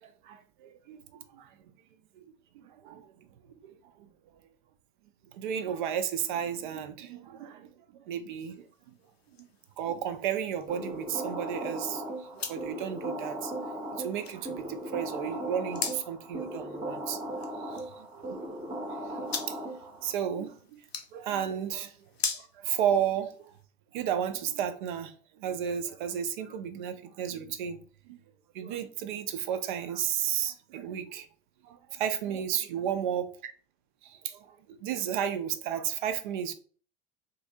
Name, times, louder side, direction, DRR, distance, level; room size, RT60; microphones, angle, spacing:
voice 1, 0.0-1.5 2.5-3.1 3.6-4.1 5.3-7.7 8.1-8.6 9.4-9.5 9.8-12.1 12.4-17.2 17.6-18.4 19.1-19.7 20.0-20.8 21.1-21.9 22.4-23.3 23.9-27.8 28.1-28.2 28.5-31.3 31.6-33.3 34.0-36.5, right 9 dB, 55° right, 0.4 m, -33 dB
sound 1, 8.5-23.6, left 5 dB, 85° left, 0.5 m, -43 dB
sound 2, 10.7-20.1, right 1 dB, 15° right, 0.7 m, -37 dB
3.1 x 2.5 x 2.6 m
figure-of-eight pair, 75°, 31 cm